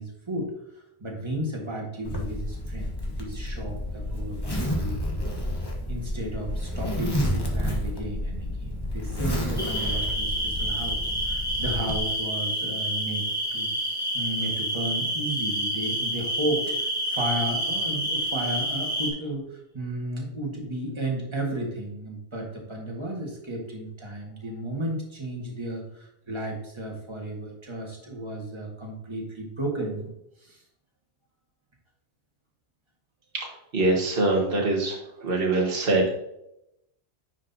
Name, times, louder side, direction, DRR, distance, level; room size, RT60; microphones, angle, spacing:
voice 1, 0.0-5.2 5.9-30.1 30.4-30.6, right 1 dB, 25° right, -1 dB, 1.8 m, -33 dB
Zipper (clothing), 2.1-12.0, left 1 dB, 20° left, 1.3 m, -30 dB
sound 1, 9.6-19.1, equal, 5° left, 1.9 m, -28 dB
voice 2, 33.3-36.1, right 2 dB, 55° right, -1 dB, 1.7 m, -24 dB
9.7 x 5.1 x 2.8 m, 0.81 s
omnidirectional pair, 1.1 m